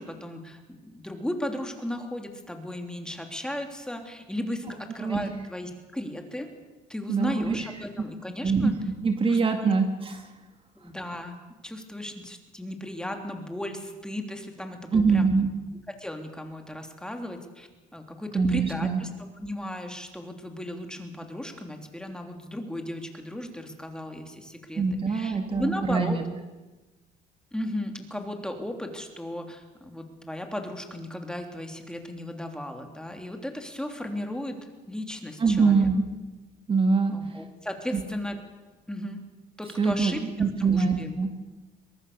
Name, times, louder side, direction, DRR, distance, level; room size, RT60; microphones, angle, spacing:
voice 1, 0.0-6.5 6.9-8.7 9.3-9.7 10.8-11.4 11.6-15.3 16.0-19.1 19.4-26.2 27.5-34.6 34.9-35.9 37.1-38.4 38.9-39.2 39.6-41.1, left 1 dB, 5° left, 4 dB, 3.2 m, -35 dB
voice 2, 5.0-5.3 7.1-7.6 8.4-8.7 9.0-10.3 14.9-15.5 18.3-19.0 24.8-26.2 35.4-36.1 36.7-37.4 37.9-38.0 39.8-41.4, right 4 dB, 30° right, 6 dB, 1.9 m, -24 dB
22.5 x 22.0 x 6.9 m, 1.2 s
cardioid pair, 110°, 17 cm